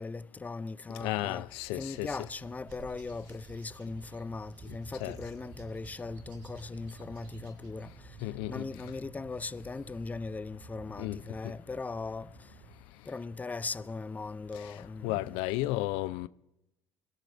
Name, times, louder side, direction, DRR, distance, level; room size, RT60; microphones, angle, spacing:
voice 1, 0.0-1.5 1.7-7.9 8.5-12.3 13.1-15.3, left 4 dB, 15° left, 0.4 m, -39 dB
voice 2, 1.0-2.1 5.0-5.2 8.2-8.7 11.0-11.2 15.0-16.3, left 17 dB, 80° left, 0.4 m, -33 dB
sound 1, 1.4-12.8, right 5 dB, 55° right, 1.4 m, -51 dB
sound 2, 1.9-7.7, right 3 dB, 85° right, 4.9 m, -59 dB
23.0 x 12.5 x 3.3 m
supercardioid pair, 75°, 9 cm